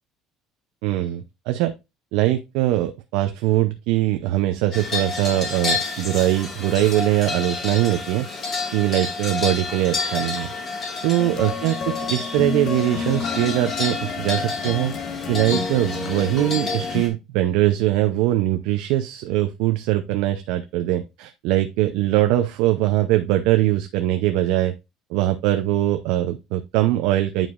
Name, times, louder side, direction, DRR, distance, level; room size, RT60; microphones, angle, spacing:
voice 1, 0.8-1.7 2.1-8.3 8.7-10.5 11.0-14.9 15.3-24.7 25.1-27.5, right 14 dB, 75° right, 7 dB, 0.6 m, -22 dB
sound 1, 4.7-17.1, left 4 dB, 30° left, 2.2 m, -30 dB
sound 2, 11.2-17.0, left 5 dB, 45° left, 0.8 m, -30 dB
9.0 x 4.8 x 2.5 m, 0.24 s
cardioid pair, 170°, 0 cm